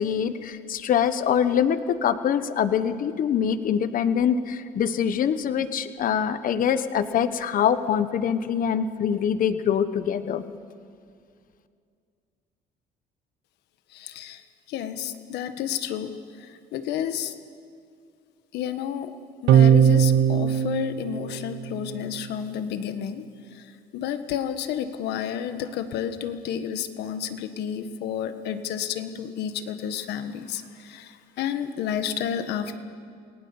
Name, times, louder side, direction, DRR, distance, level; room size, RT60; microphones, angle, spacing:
voice 1, 0.0-10.4, left 8 dB, 55° left, 12 dB, 1.2 m, -24 dB
voice 2, 13.9-14.4 14.7-16.1 16.4-17.3 18.5-19.1 19.4-23.2 23.5-23.6 23.9-32.7, left 9 dB, 85° left, 9 dB, 1.5 m, -31 dB
sound 1, 19.5-22.1, right 9 dB, 90° right, 0.9 m, -20 dB
28.5 x 19.0 x 7.2 m, 2.3 s
cardioid pair, 110°, 17 cm